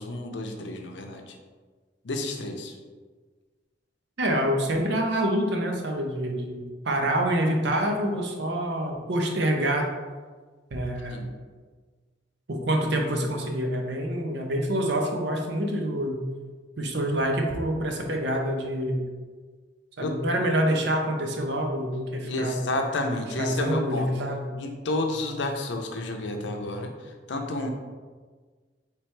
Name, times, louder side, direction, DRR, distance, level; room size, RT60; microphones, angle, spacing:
voice 1, 0.0-1.4 2.0-2.8 11.1-11.3 20.0-20.1 22.2-24.1 24.6-27.7, left 2 dB, 75° left, 4 dB, 0.6 m, -30 dB
voice 2, 4.2-9.8 10.7-11.3 12.5-16.2 16.8-19.1 20.0-22.6 23.4-24.5, right 1 dB, 65° right, 2 dB, 0.7 m, -26 dB
4.4 x 3.3 x 3.2 m, 1.4 s
head